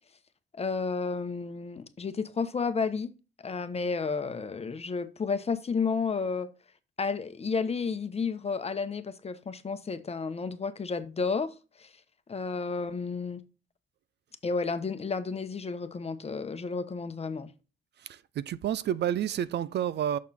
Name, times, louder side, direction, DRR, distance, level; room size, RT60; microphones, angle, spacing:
voice 1, 0.5-3.1 3.4-6.5 7.0-11.9 12.3-13.4 14.4-17.5, left 4 dB, 30° left, 1.0 m, -32 dB
voice 2, 18.0-20.2, right 10 dB, 60° right, 0.5 m, -30 dB
6.4 x 5.8 x 4.2 m
cardioid pair, 90°, 20 cm